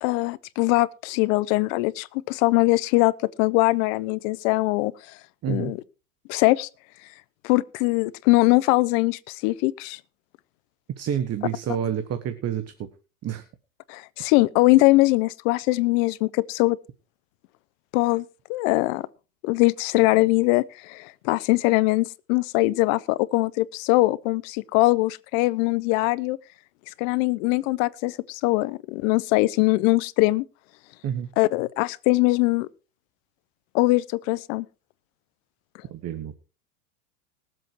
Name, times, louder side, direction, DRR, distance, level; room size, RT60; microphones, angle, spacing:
voice 1, 0.0-4.9 5.5-5.8 6.3-6.7 7.4-10.0 13.9-16.8 17.9-19.1 19.4-26.4 27.0-30.4 31.4-32.7 33.7-34.7, left 21 dB, 55° left, 1.0 m, -22 dB
voice 2, 5.4-5.7 11.0-12.9 13.2-13.4 31.0-31.3 35.9-36.4, right 9 dB, 30° right, 1.4 m, -29 dB
20.0 x 7.8 x 4.6 m
supercardioid pair, 115°, 47 cm